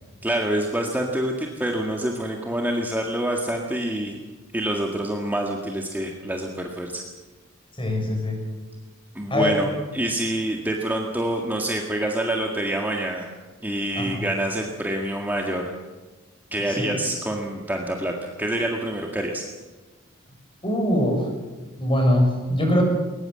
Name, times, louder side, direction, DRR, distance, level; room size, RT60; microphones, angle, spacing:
voice 1, 0.2-4.2 4.5-7.0 9.2-9.7 9.9-13.3 13.6-15.7 16.5-19.4, right 1 dB, 10° right, 1 dB, 1.9 m, -26 dB
voice 2, 7.7-8.4 9.3-9.6 13.9-14.2 16.7-16.9 20.6-21.3 21.8-22.8, left 1 dB, 25° left, 2 dB, 6.6 m, -22 dB
21.0 x 20.0 x 7.8 m, 1.2 s
head